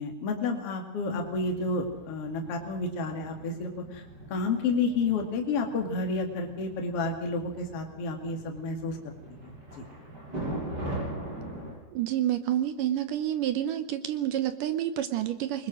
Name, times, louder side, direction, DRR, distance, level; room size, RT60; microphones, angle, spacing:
voice 1, 0.0-4.0 4.3-9.0 9.4-9.8, left 3 dB, 40° left, 3 dB, 2.9 m, -30 dB
sound 1, 1.0-11.7, right 1 dB, 25° right, 7.2 m, -41 dB
voice 2, 11.9-15.7, right 11 dB, 70° right, 11 dB, 2.1 m, -29 dB
25.0 x 21.0 x 6.4 m, 0.89 s
omnidirectional pair, 4.5 m